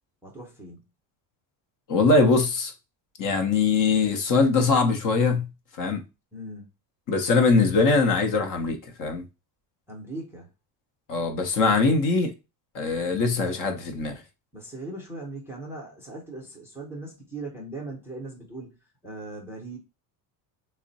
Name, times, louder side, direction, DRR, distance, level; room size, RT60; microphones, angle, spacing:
voice 1, 0.2-0.8 6.3-6.7 9.9-10.5 14.5-18.8 19.0-19.8, right 2 dB, 5° right, 0.6 m, -39 dB
voice 2, 1.9-2.7 3.2-5.5 5.8-6.0 7.1-9.2 11.1-12.3 12.7-14.2, left 4 dB, 40° left, 0.7 m, -22 dB
3.6 x 2.1 x 3.9 m
cardioid pair, 155°, 48 cm